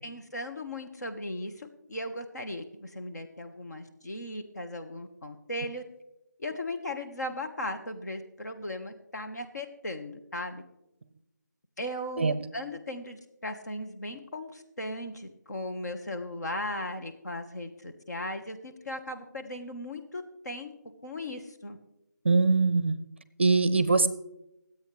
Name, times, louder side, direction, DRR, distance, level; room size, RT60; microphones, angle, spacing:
voice 1, 0.0-5.8 6.4-10.6 11.8-20.7 21.0-21.8, left 1 dB, 65° left, 6 dB, 1.5 m, -37 dB
voice 2, 22.2-23.0 23.4-24.1, right 3 dB, 35° right, 14 dB, 0.5 m, -22 dB
23.5 x 8.4 x 3.3 m, 0.88 s
figure-of-eight pair, 170°, 10 cm